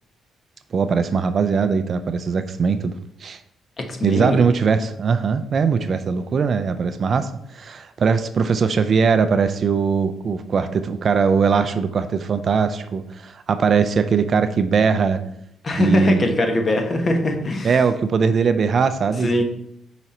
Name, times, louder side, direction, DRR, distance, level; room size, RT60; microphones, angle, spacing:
voice 1, 0.7-3.4 4.0-15.2 15.8-16.3 17.6-19.4, right 5 dB, 50° right, 10 dB, 0.5 m, -20 dB
voice 2, 3.8-4.4 15.6-17.8 19.2-19.4, left 1 dB, 40° left, 4 dB, 1.2 m, -21 dB
5.8 x 4.0 x 4.3 m, 0.76 s
cardioid pair, 90°, 0 cm